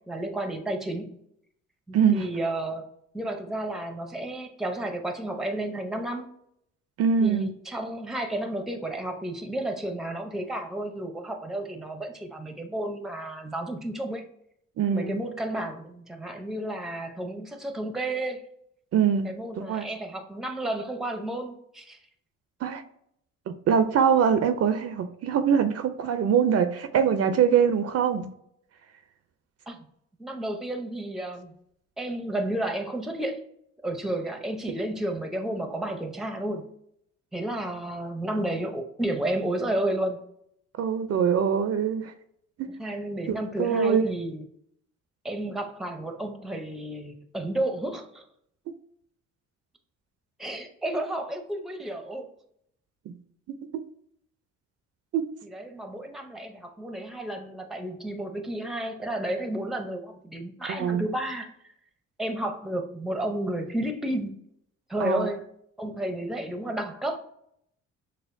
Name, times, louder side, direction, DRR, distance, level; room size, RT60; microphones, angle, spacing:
voice 1, 0.1-1.2 1.9-2.9 3.1-6.3 7.2-14.2 14.9-18.4 19.2-22.0 29.7-29.8 30.2-31.5 32.0-33.4 33.8-36.7 37.3-40.2 42.8-44.4 45.2-48.2 50.4-52.3 55.5-61.5 62.2-64.4 64.9-65.4 65.8-67.2, right 1 dB, ahead, 5 dB, 0.6 m, -32 dB
voice 2, 1.9-2.3 7.0-7.5 14.8-15.2 18.9-19.9 22.6-22.8 23.5-28.3 40.8-42.1 42.6-42.7 43.3-44.0 53.1-53.2 55.1-55.3 60.7-61.0 65.0-65.3, right 7 dB, 55° right, 9 dB, 0.5 m, -23 dB
6.3 x 2.1 x 2.5 m, 0.72 s
cardioid pair, 90°, 30 cm